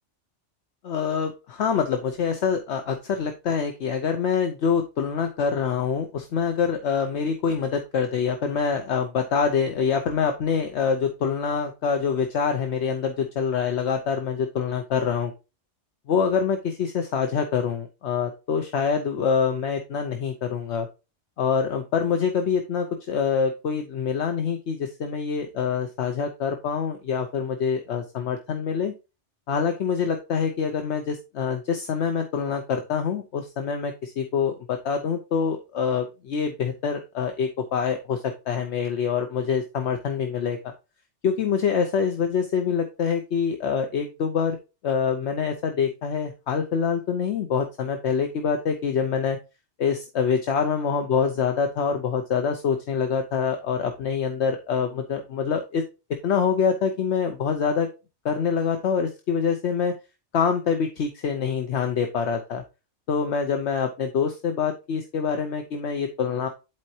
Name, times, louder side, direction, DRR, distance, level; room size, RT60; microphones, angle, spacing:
voice 1, 0.8-15.3 16.1-20.9 21.4-28.9 29.5-40.6 41.2-44.6 44.8-49.4 49.8-55.8 56.2-57.9 58.2-59.9 60.3-62.6 63.1-66.5, left 6 dB, 70° left, 6 dB, 1.0 m, -25 dB
10.5 x 4.4 x 2.8 m, 0.29 s
omnidirectional pair, 1.2 m